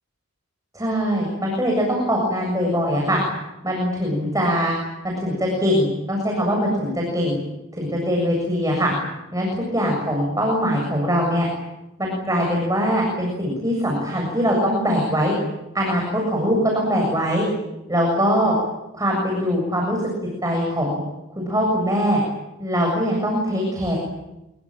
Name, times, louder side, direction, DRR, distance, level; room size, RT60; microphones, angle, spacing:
voice 1, 0.7-3.2 3.6-4.7 5.0-7.4 7.8-8.9 9.3-9.5 9.7-11.5 12.0-15.3 15.7-17.5 17.9-18.6 18.9-20.0 20.4-21.0 21.4-22.2 22.6-24.0, equal, 15° right, -1 dB, 7.4 m, -22 dB
26.5 x 23.0 x 9.1 m, 0.96 s
head